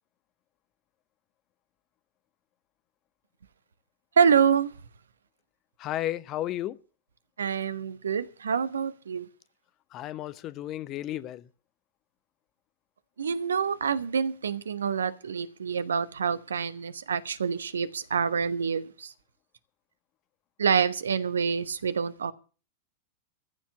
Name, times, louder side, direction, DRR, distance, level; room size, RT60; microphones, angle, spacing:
voice 1, 4.2-4.7 7.4-9.3 13.2-19.1 20.6-22.3, right 6 dB, 70° right, 1.0 m, -26 dB
voice 2, 5.8-6.8 9.9-11.5, left 13 dB, 35° left, 0.8 m, -33 dB
15.0 x 7.3 x 8.1 m
figure-of-eight pair, 90°, 0 cm